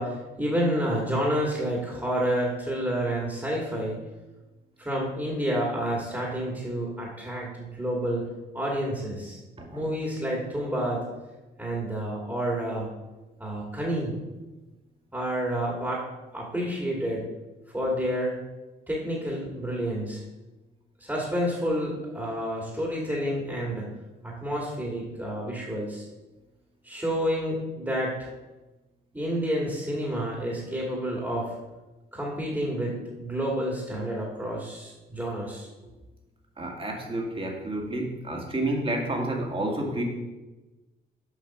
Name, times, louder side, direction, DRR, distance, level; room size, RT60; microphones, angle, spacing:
voice 1, 0.0-4.0 4.8-8.2 8.5-9.4 9.7-11.0 11.6-12.9 13.4-14.1 15.1-16.0 16.3-17.3 17.7-18.4 18.9-20.2 21.0-23.9 24.2-26.1 26.8-28.3 29.1-31.6 32.1-35.7, equal, 10° right, -3 dB, 2.3 m, -29 dB
voice 2, 9.6-9.9 36.6-40.0, right 1 dB, 25° right, 0 dB, 2.2 m, -30 dB
7.4 x 5.5 x 6.1 m, 1.1 s
cardioid pair, 90°, 20 cm